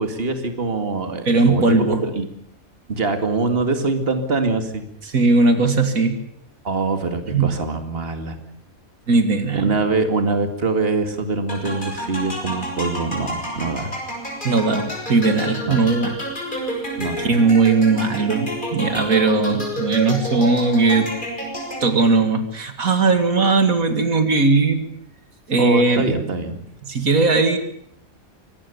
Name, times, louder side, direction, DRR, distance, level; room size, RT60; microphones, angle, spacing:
voice 1, 0.0-2.3 2.9-4.8 6.6-8.4 9.5-13.9 15.6-15.9 17.0-17.4 25.6-26.6, right 3 dB, 40° right, 7 dB, 2.5 m, -24 dB
voice 2, 1.3-2.0 5.1-6.2 7.3-7.5 9.1-9.7 14.4-16.1 17.2-21.1 21.8-24.8 25.5-26.0 26.9-27.6, right 3 dB, 75° right, 8 dB, 2.5 m, -18 dB
sound 1, 11.5-22.2, equal, 35° left, 6.5 m, -30 dB
25.0 x 19.5 x 7.0 m, 0.70 s
omnidirectional pair, 1.5 m